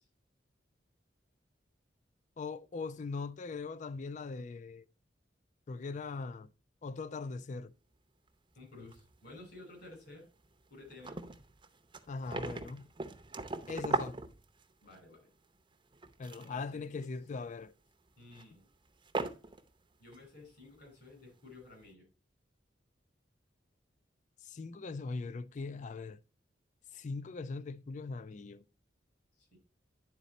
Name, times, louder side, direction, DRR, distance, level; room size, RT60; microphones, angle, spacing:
voice 1, 2.4-4.8 5.7-6.5 6.8-7.7 12.1-12.9 13.7-14.2 16.2-17.7 24.5-26.2 26.9-28.6, left 4 dB, 40° left, 0.4 m, -40 dB
voice 2, 8.6-10.2 10.7-11.2 14.8-15.3 16.4-16.9 18.2-18.6 20.0-22.0 29.5-29.6, left 2 dB, 60° left, 4.3 m, -53 dB
sound 1, 8.9-9.6 9.9-10.0 10.4-10.5 10.7-15.0 15.9-16.6 17.0-17.3 18.3-18.4 19.0-19.7 20.1-20.2, right 3 dB, 25° right, 0.6 m, -39 dB
10.0 x 4.1 x 4.1 m
head